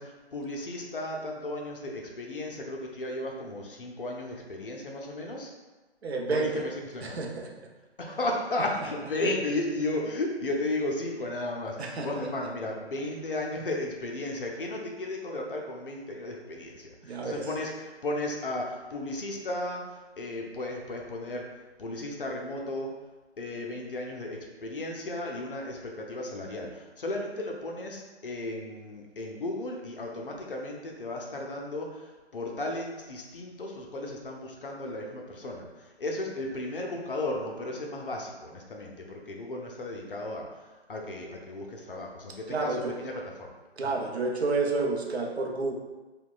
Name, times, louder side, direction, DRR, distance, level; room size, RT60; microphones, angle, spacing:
voice 1, 0.0-5.5 6.3-7.2 8.0-21.5 21.8-23.0 23.4-43.5 43.8-44.0, left 2 dB, 55° left, 0 dB, 0.5 m, -34 dB
voice 2, 6.0-6.6 7.0-7.7 11.8-12.3 17.0-17.5 42.5-43.0 43.8-45.7, right 3 dB, 70° right, 1 dB, 0.5 m, -30 dB
2.8 x 2.1 x 2.3 m, 1.2 s
figure-of-eight pair, 150°, 33 cm